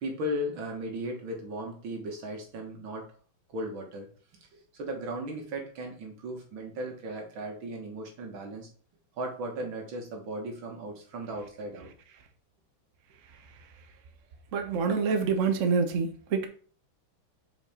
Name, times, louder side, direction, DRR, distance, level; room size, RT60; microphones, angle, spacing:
voice 1, 0.0-3.0 3.5-4.1 4.5-8.7 9.2-11.9, equal, 75° right, 2.2 m, -36 dB
voice 2, 14.5-16.5, right 5 dB, 50° right, 1.0 m, -26 dB
5.7 x 4.7 x 4.2 m
omnidirectional pair, 2.2 m